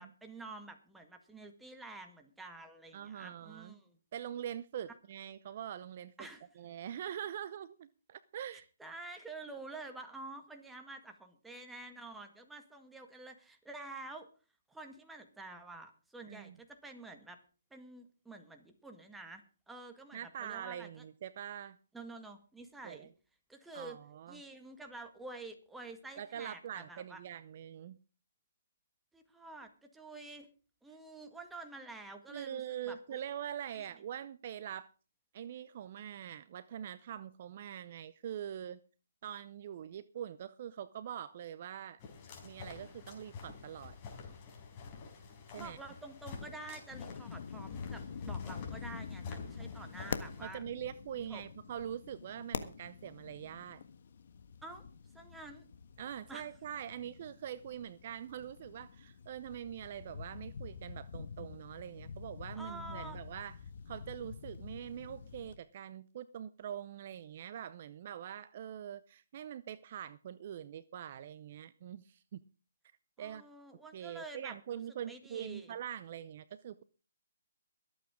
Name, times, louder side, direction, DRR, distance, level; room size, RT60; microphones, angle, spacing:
voice 1, 0.0-4.0 6.2-6.5 8.8-14.3 14.7-17.4 17.7-21.0 21.9-23.1 23.5-24.0 24.3-27.2 29.1-30.5 30.8-33.2 33.7-33.9 45.5-50.6 51.3-51.4 54.6-54.9 55.1-55.6 56.3-56.5 62.5-63.2 73.2-75.8, right 2 dB, 5° right, 5 dB, 1.7 m, -49 dB
voice 2, 2.9-3.7 4.1-6.3 6.6-8.7 16.3-16.6 20.1-21.8 22.8-23.1 23.7-24.4 26.2-28.0 32.3-34.9 35.3-38.8 39.2-42.0 42.4-44.0 45.5-45.8 50.4-53.8 56.0-63.5 63.9-72.4 73.2-73.4 73.9-76.8, right 10 dB, 40° right, 16 dB, 0.6 m, -44 dB
sound 1, 42.0-50.5, left 5 dB, 30° left, 4.8 m, -49 dB
sound 2, 46.9-65.6, left 6 dB, 55° left, 1.5 m, -46 dB
23.0 x 8.6 x 3.7 m, 0.36 s
hypercardioid pair, 155°, 0 cm